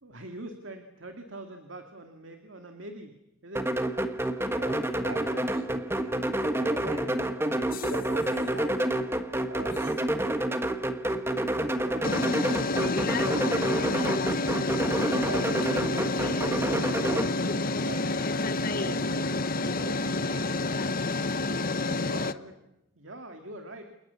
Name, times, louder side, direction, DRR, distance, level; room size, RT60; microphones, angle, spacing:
voice 1, 0.0-3.2 3.4-3.9 11.1-14.0 21.8-22.6 23.0-23.9, right 1 dB, 65° right, 5 dB, 2.4 m, -44 dB
sound 1, 3.5-17.3, right 1 dB, 10° right, 1.4 m, -28 dB
voice 2, 4.5-6.2 6.5-9.0 9.5-10.3 15.0-18.3 18.7-20.8, right 1 dB, 80° right, 5 dB, 7.1 m, -42 dB
sound 2, 7.7-8.2 9.8-9.9 12.0-22.3, left 2 dB, 45° left, 0.9 m, -29 dB
29.0 x 28.5 x 7.1 m, 0.89 s
head